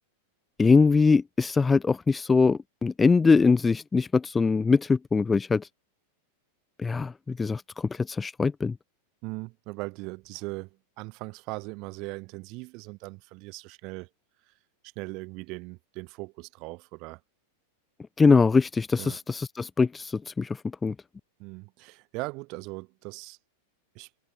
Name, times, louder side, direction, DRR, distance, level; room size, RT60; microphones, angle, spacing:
voice 1, 0.6-5.7 6.8-8.8 18.2-20.9, left 4 dB, 15° left, 0.4 m, -22 dB
voice 2, 9.2-14.1 14.5-14.6 14.9-17.2 19.0-19.2 21.4-23.4 23.9-24.1, right 26 dB, 40° right, 1.1 m, -39 dB
figure-of-eight pair, 90°, 0 cm